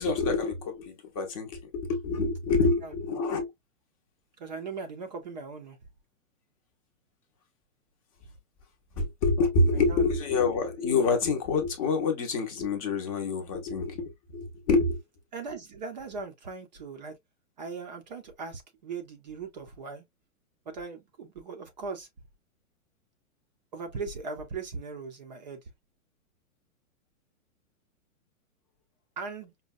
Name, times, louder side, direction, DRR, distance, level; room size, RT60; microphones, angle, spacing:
voice 1, 0.0-3.5 9.0-15.0, left 3 dB, 25° left, 0.7 m, -27 dB
voice 2, 2.6-3.2 4.4-5.8 9.7-10.0 15.3-17.2 17.6-20.0 20.7-22.1 23.7-25.7 29.2-29.5, right 4 dB, 35° right, 0.5 m, -39 dB
5.2 x 2.2 x 2.4 m
hypercardioid pair, 165°, 42 cm